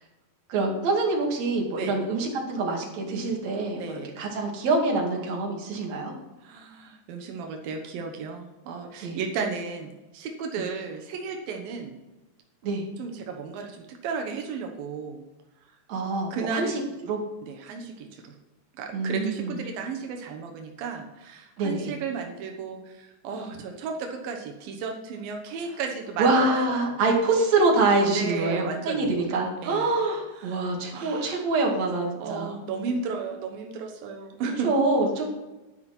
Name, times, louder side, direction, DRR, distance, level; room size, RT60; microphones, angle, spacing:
voice 1, 0.5-6.1 9.0-9.2 12.6-12.8 15.9-16.7 17.1-17.2 18.9-19.5 21.6-21.9 26.2-32.6 34.6-35.2, right 3 dB, 55° right, -1 dB, 3.3 m, -25 dB
voice 2, 3.8-4.2 6.4-12.0 13.0-15.2 16.3-16.7 17.4-18.4 18.7-26.9 28.1-29.1 29.6-29.9 30.3-31.5 32.2-35.1, right 5 dB, 85° right, 3 dB, 2.9 m, -34 dB
10.5 x 10.0 x 4.4 m, 1.0 s
omnidirectional pair, 4.0 m